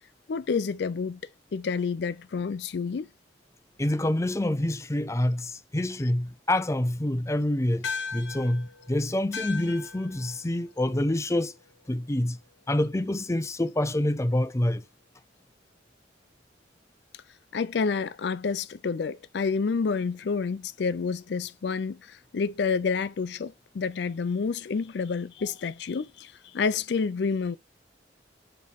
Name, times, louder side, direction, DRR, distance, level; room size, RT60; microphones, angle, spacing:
voice 1, 0.3-1.2 1.5-3.1 17.5-27.6, left 5 dB, 65° left, 0.4 m, -29 dB
voice 2, 3.8-11.6 11.9-12.4 12.7-14.8, left 1 dB, 15° left, 0.5 m, -27 dB
sound 1, 7.8-12.5, left 5 dB, 85° left, 1.4 m, -40 dB
8.8 x 3.1 x 5.1 m
head